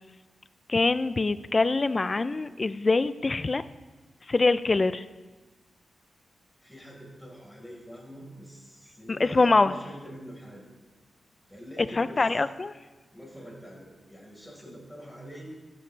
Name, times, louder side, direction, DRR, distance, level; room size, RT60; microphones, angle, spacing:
voice 1, 0.7-3.6 4.3-5.0 9.1-9.7 12.0-12.7, left 3 dB, 35° left, 13 dB, 0.5 m, -24 dB
voice 2, 6.6-10.7 11.5-12.3 13.1-15.5, equal, 5° left, -2 dB, 4.6 m, -45 dB
15.0 x 12.5 x 3.4 m, 1.2 s
cardioid pair, 85°, 0 cm